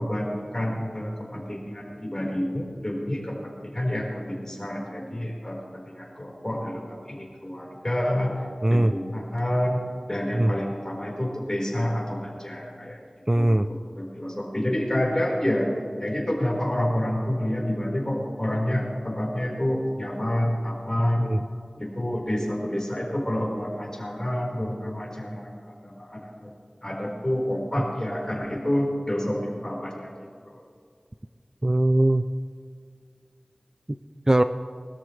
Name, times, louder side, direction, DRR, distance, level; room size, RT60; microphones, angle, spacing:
voice 1, 0.0-8.4 8.7-9.8 10.1-13.0 13.3-13.5 14.0-15.7 16.0-21.3 21.8-26.5 26.8-30.3, left 1 dB, 30° left, -3 dB, 4.6 m, -28 dB
voice 2, 8.6-8.9 10.3-10.5 13.3-13.7 21.3-21.4 27.8-27.9 31.6-32.2 34.3-34.4, right 1 dB, 30° right, 10 dB, 0.4 m, -20 dB
22.0 x 13.0 x 3.3 m, 2.1 s
wide cardioid pair, 55°, 2 cm